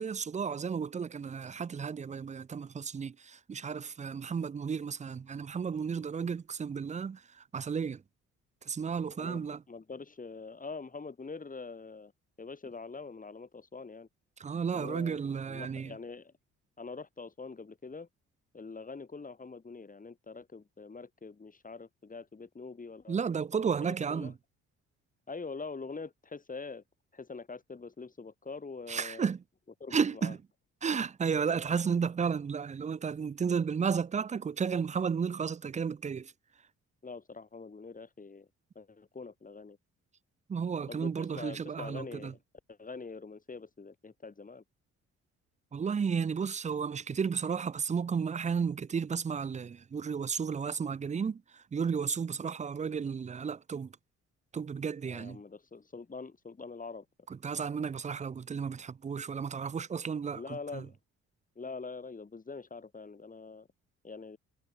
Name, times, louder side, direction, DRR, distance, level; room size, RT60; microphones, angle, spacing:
voice 1, 0.0-8.0 8.7-9.6 14.4-15.9 23.1-24.3 28.9-29.4 29.9-30.4 30.8-36.3 40.5-42.3 45.7-53.9 54.5-55.4 57.4-60.4 60.7-60.8, right 6 dB, 25° right, 0.5 m, -33 dB
voice 2, 9.2-12.1 12.4-14.1 14.7-16.3 16.8-18.1 18.5-23.2 23.6-24.3 25.3-26.8 27.1-29.3 29.8-30.3 37.0-38.5 38.7-39.8 40.9-42.4 42.7-44.6 55.1-57.1 60.3-61.0 61.6-63.7 64.0-64.4, left 4 dB, 25° left, 5.8 m, -44 dB
cardioid pair, 90°, 30 cm